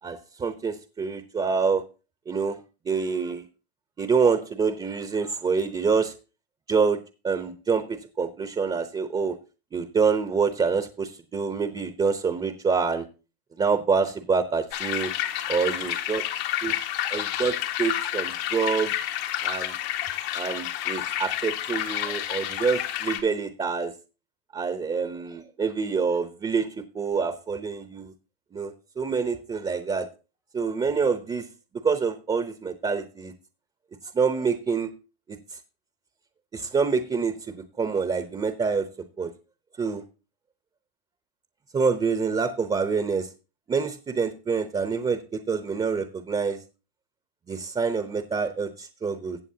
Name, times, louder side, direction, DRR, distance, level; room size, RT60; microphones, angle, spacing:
voice 1, 0.0-1.8 2.3-2.6 2.8-3.4 4.0-6.1 6.7-7.0 7.2-9.4 9.7-13.0 13.6-15.1 15.5-16.2 16.6-16.7 17.1-18.9 19.4-19.7 20.3-23.9 24.5-26.7 26.9-28.1 28.5-30.1 30.5-31.5 31.8-33.3 34.1-34.9 35.3-35.6 36.5-38.9 39.2-39.3 39.8-40.0 41.7-43.3 43.7-46.6 47.5-49.4, right 5 dB, 15° right, 9 dB, 0.8 m, -26 dB
sound 1, 14.7-23.2, left 12 dB, 75° left, 1.8 m, -29 dB
15.5 x 7.9 x 2.8 m, 0.33 s
supercardioid pair, 120°, 31 cm